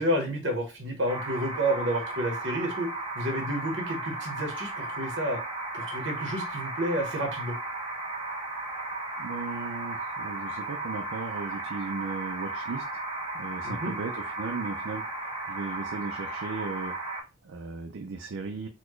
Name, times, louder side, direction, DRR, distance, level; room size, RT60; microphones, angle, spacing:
voice 1, 0.0-2.9 3.1-5.4 5.7-7.5 13.6-13.9, right 1 dB, 70° right, 3 dB, 1.1 m, -30 dB
sound 1, 1.1-17.2, right 2 dB, 25° right, 1.2 m, -35 dB
voice 2, 9.2-12.8 13.3-18.7, right 4 dB, 85° right, 5 dB, 0.5 m, -37 dB
4.1 x 2.2 x 3.1 m, 0.27 s
head